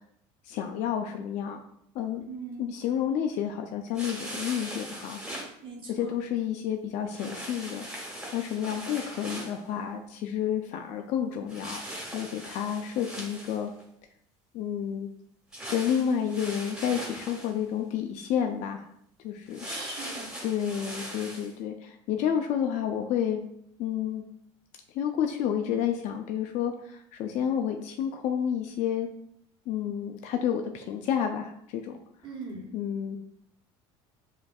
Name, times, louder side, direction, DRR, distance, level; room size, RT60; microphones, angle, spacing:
voice 1, 0.4-1.6 1.9-2.2 2.6-5.2 5.9-11.8 12.1-13.7 14.5-15.1 15.7-18.9 19.2-19.7 20.4-23.4 23.8-24.2 24.9-29.1 29.7-32.0 32.7-33.2, left 9 dB, 55° left, 5 dB, 0.5 m, -30 dB
voice 2, 2.3-2.7 5.6-6.1 19.6-20.3 32.2-32.7, right 3 dB, 40° right, -6 dB, 1.2 m, -40 dB
sound 1, 3.9-5.5 7.1-9.6 11.5-13.8 15.5-17.6 19.5-21.5, right 1 dB, 5° right, 1.5 m, -40 dB
7.1 x 2.6 x 2.3 m, 0.72 s
supercardioid pair, 100°, 15 cm